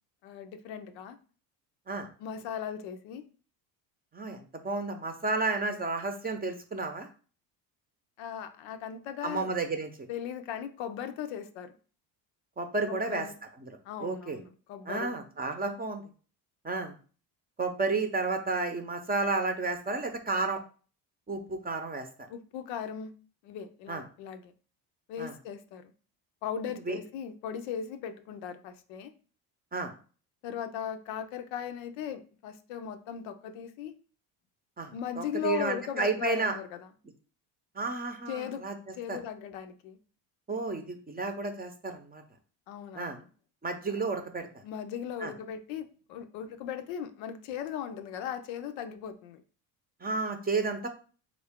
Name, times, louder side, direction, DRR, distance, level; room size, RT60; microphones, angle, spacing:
voice 1, 0.2-1.2 2.2-3.2 8.2-9.5 10.1-11.7 12.9-13.3 13.8-15.2 22.3-23.1 23.4-24.4 25.1-25.8 26.4-29.1 30.4-34.0 34.9-36.8 38.3-38.7 38.9-40.0 42.7-43.2 44.6-49.4, left 8 dB, 70° left, 8 dB, 0.6 m, -38 dB
voice 2, 4.1-7.1 9.2-9.9 12.6-13.3 13.6-14.4 14.9-16.0 16.6-16.9 17.6-20.6 21.3-22.1 23.9-24.0 25.2-25.3 26.9-27.0 29.7-29.9 34.8-36.6 37.7-38.7 39.1-39.2 40.5-42.2 42.9-43.2 43.6-44.6 45.2-45.3 50.0-50.9, right 3 dB, 20° right, 6 dB, 0.7 m, -32 dB
3.7 x 2.4 x 3.5 m, 0.39 s
supercardioid pair, 80°, 47 cm